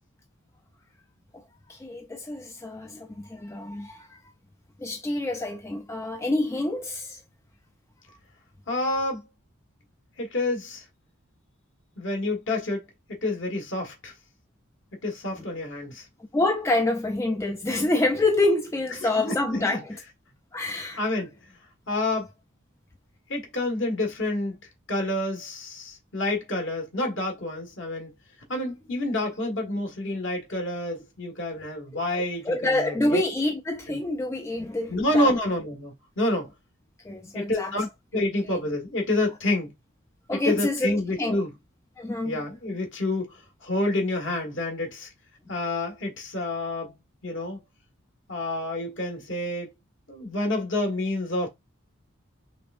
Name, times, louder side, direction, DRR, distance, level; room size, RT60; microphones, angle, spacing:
voice 1, 1.7-4.1 4.8-7.2 16.3-19.9 20.5-21.0 32.1-35.3 37.1-37.7 38.1-38.3 40.3-41.4 42.0-42.4, left 2 dB, 15° left, 0.4 m, -27 dB
voice 2, 8.7-9.2 10.2-10.8 12.0-12.8 13.2-14.1 15.0-16.0 19.2-19.8 21.0-21.3 21.9-22.3 23.3-24.6 24.9-28.1 28.5-33.2 33.9-34.0 34.9-36.5 37.3-39.7 40.3-41.5 42.2-45.1 45.5-46.9 47.2-47.6 48.3-49.7 50.1-51.5, left 1 dB, 60° left, 1.6 m, -28 dB
5.1 x 3.4 x 2.5 m
head